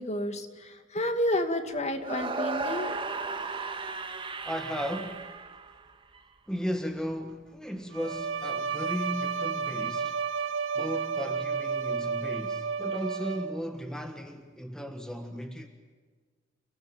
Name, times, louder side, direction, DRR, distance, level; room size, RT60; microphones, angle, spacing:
voice 1, 0.0-2.9, left 1 dB, 35° left, 2.3 m, -30 dB
sound 1, 2.0-6.2, right 3 dB, 25° right, 1.8 m, -35 dB
voice 2, 4.4-5.3 6.5-10.2 10.7-15.7, equal, 5° left, 1.6 m, -35 dB
Bowed string instrument, 7.9-13.7, right 5 dB, 70° right, 1.2 m, -32 dB
30.0 x 17.5 x 8.9 m
head